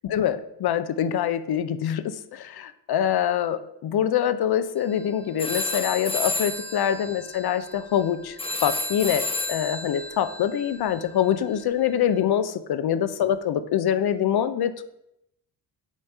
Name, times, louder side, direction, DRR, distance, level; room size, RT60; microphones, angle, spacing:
voice 1, 0.0-8.4 8.6-14.8, left 9 dB, 55° left, 12 dB, 0.6 m, -25 dB
sound 1, 4.8-5.0 5.4-12.1, left 2 dB, 10° left, 0.9 m, -32 dB
8.4 x 3.2 x 5.5 m, 0.81 s
cardioid pair, 75°, 46 cm